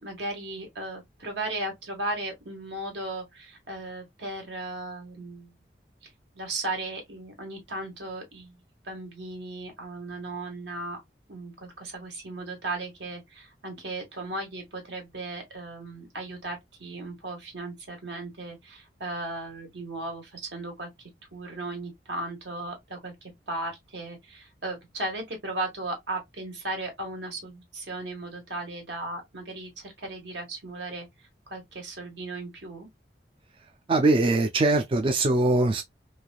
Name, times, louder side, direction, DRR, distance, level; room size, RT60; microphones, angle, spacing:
voice 1, 0.0-5.5 6.0-6.1 6.3-11.0 11.3-20.9 21.3-32.9, right 2 dB, 75° right, 1.5 m, -36 dB
voice 2, 33.9-35.8, right 2 dB, 30° right, 0.3 m, -22 dB
3.2 x 2.5 x 2.2 m
head